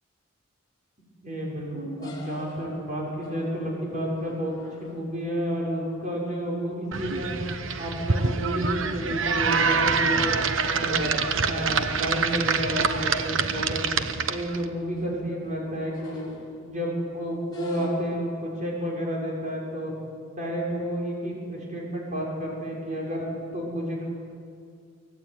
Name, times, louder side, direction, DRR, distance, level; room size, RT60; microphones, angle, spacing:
voice 1, 1.2-4.5 4.8-7.4 7.8-10.4 10.8-13.9 14.3-16.3 16.6-19.9 20.3-23.2 23.5-24.1, equal, 40° right, -2 dB, 6.3 m, -30 dB
sound 1, 2.0-5.3 7.0-7.2 7.6-8.0 8.4-10.9 11.4-11.5 11.8-11.9 12.7-12.8 13.1-13.3 13.6-14.0 14.6-16.8 17.4-17.9, equal, 20° left, 6.5 m, -47 dB
sound 2, 6.9-14.6, right 5 dB, 75° right, 1.1 m, -26 dB
24.0 x 18.0 x 9.4 m, 2.3 s
head